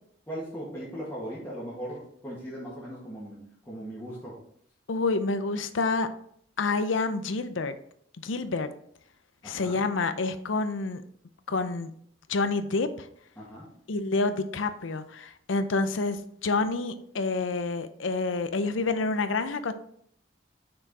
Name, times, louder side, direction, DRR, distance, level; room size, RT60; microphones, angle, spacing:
voice 1, 0.3-3.4 3.7-4.3 9.4-9.8 13.4-13.7, equal, 10° left, -8 dB, 1.8 m, -38 dB
voice 2, 4.9-6.1 6.6-7.7 8.2-8.7 9.4-11.0 11.5-11.9 12.3-13.1 13.9-19.7, left 3 dB, 80° left, 11 dB, 0.6 m, -28 dB
6.3 x 4.7 x 4.6 m, 0.65 s
head